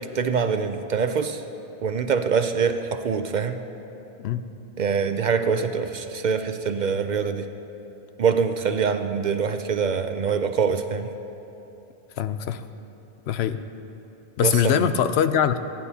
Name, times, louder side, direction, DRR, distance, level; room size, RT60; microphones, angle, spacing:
voice 1, 0.0-1.4 1.8-3.6 4.8-7.5 8.2-11.1 14.4-14.9, right 6 dB, 55° right, 8 dB, 0.6 m, -24 dB
voice 2, 12.2-12.6 13.3-13.6 14.4-15.6, left 9 dB, 90° left, 11 dB, 0.8 m, -22 dB
26.0 x 10.0 x 2.8 m, 3.0 s
omnidirectional pair, 1.0 m